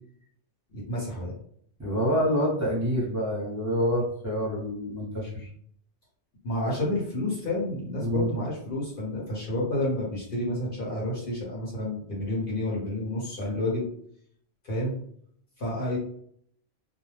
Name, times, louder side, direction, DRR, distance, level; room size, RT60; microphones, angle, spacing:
voice 1, 0.7-1.3 6.4-13.8 14.6-14.9 15.6-16.0, left 1 dB, 50° left, -4 dB, 1.0 m, -30 dB
voice 2, 1.8-5.5 8.0-8.3, equal, 15° right, -7 dB, 0.9 m, -27 dB
2.4 x 2.1 x 3.2 m, 0.63 s
omnidirectional pair, 1.2 m